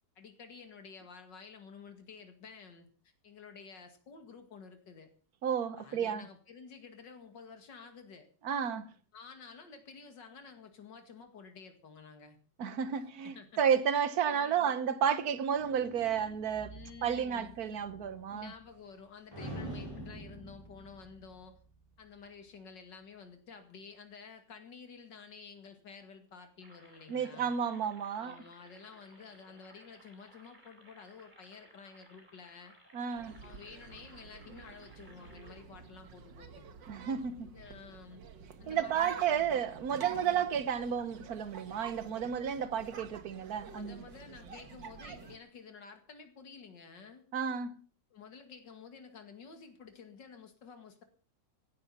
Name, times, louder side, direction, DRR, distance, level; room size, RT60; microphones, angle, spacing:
voice 1, 0.2-2.9 3.2-5.1 5.8-8.3 9.1-12.4 12.9-13.6 14.3-14.8 16.6-17.6 18.3-21.6 22.0-27.6 28.1-32.7 33.4-36.6 37.5-38.2 38.6-39.5 40.1-40.5 43.7-47.3 48.1-51.0, left 5 dB, 80° left, 2.8 m, -51 dB
voice 2, 5.4-6.3 8.4-8.8 12.6-16.7 17.0-18.5 27.1-28.4 32.9-33.3 36.9-37.5 38.7-44.0 47.3-47.8, right 8 dB, 60° right, 1.5 m, -32 dB
sound 1, 15.6-19.0 19.3-22.0, right 1 dB, 15° left, 6.2 m, -47 dB
sound 2, 26.6-35.6, right 1 dB, 25° right, 4.3 m, -60 dB
sound 3, 33.2-45.4, right 6 dB, 85° right, 2.1 m, -49 dB
16.5 x 12.0 x 5.6 m
omnidirectional pair, 1.9 m